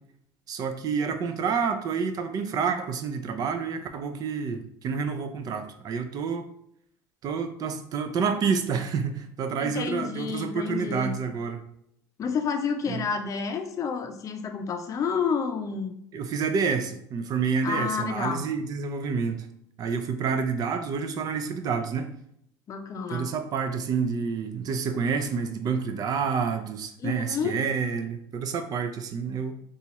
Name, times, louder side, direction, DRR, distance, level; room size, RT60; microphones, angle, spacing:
voice 1, 0.5-6.5 7.2-11.6 12.9-13.1 16.1-19.5 19.8-22.1 23.1-29.5, right 5 dB, 45° right, 8 dB, 0.4 m, -28 dB
voice 2, 9.6-11.1 12.2-16.0 17.6-18.4 22.7-23.3 27.0-27.5, left 6 dB, 40° left, 6 dB, 0.5 m, -30 dB
4.0 x 2.4 x 3.0 m, 0.72 s
supercardioid pair, 100°, 9 cm